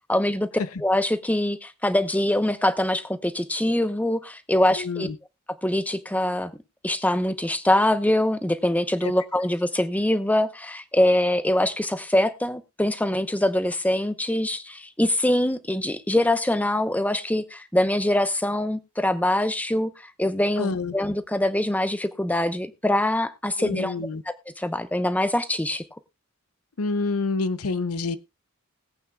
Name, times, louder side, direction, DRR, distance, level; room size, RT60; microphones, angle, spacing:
voice 1, 0.1-0.5 0.8-5.1 5.6-6.5 6.8-19.9 20.2-23.9 24.3-25.8, left 1 dB, 5° left, 0.8 m, -23 dB
voice 2, 4.8-5.2 9.0-9.1 20.6-20.9 23.6-24.2 26.8-28.2, left 3 dB, 85° left, 0.7 m, -27 dB
20.5 x 8.7 x 2.3 m
head